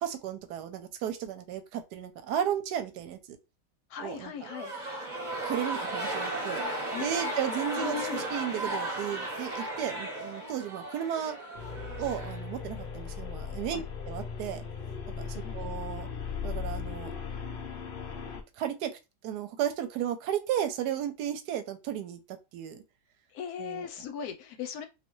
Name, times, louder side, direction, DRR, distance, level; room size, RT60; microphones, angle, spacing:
voice 1, 0.0-3.4 4.0-4.3 5.4-6.6 7.0-11.4 12.0-13.8 14.1-14.6 15.2-16.1 16.4-17.1 18.6-18.9 19.2-22.8 23.6-23.9, right 10 dB, 85° right, 1.2 m, -34 dB
voice 2, 3.9-4.7 6.9-7.1 7.7-8.2 13.7-13.8 15.3-15.7 23.3-24.9, left 7 dB, 75° left, 1.0 m, -38 dB
sound 1, 4.4-12.9, right 1 dB, 35° right, 0.9 m, -35 dB
sound 2, 11.5-18.4, left 6 dB, 90° left, 0.4 m, -38 dB
3.2 x 2.7 x 3.0 m
omnidirectional pair, 1.7 m